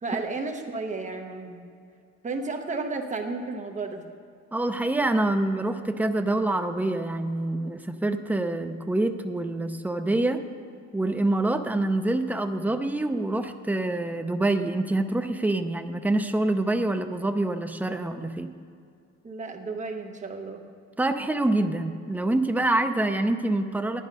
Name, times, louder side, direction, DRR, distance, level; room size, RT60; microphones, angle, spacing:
voice 1, 0.0-1.6 2.2-4.0 19.2-20.6, right 3 dB, 25° right, 4 dB, 1.0 m, -33 dB
voice 2, 4.5-10.4 10.9-18.5 21.0-24.0, right 2 dB, 5° right, 6 dB, 0.4 m, -26 dB
11.5 x 10.0 x 5.3 m, 2.4 s
cardioid pair, 160°, 30 cm